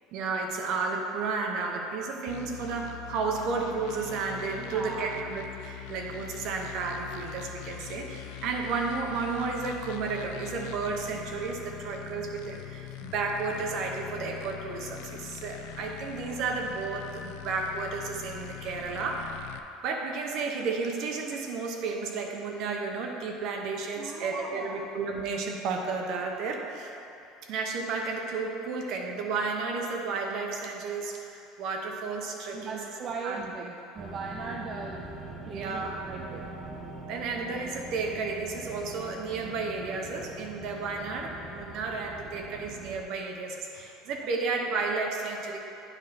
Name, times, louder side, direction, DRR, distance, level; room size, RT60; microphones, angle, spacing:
voice 1, 0.1-19.5 19.8-26.9 27.5-32.9 33.2-33.4 35.5-36.0 37.1-45.6, right 4 dB, 60° right, 2 dB, 0.9 m, -32 dB
sound 1, 2.3-19.6, left 13 dB, 80° left, 0.4 m, -43 dB
voice 2, 4.6-5.2 24.0-24.9 32.5-35.1 35.4-36.5 44.2-44.3, right 4 dB, 35° right, 0 dB, 0.5 m, -39 dB
sound 2, 34.0-43.0, right 2 dB, 20° right, 0.9 m, -43 dB
9.2 x 3.2 x 5.8 m, 2.9 s
supercardioid pair, 125°, 0 cm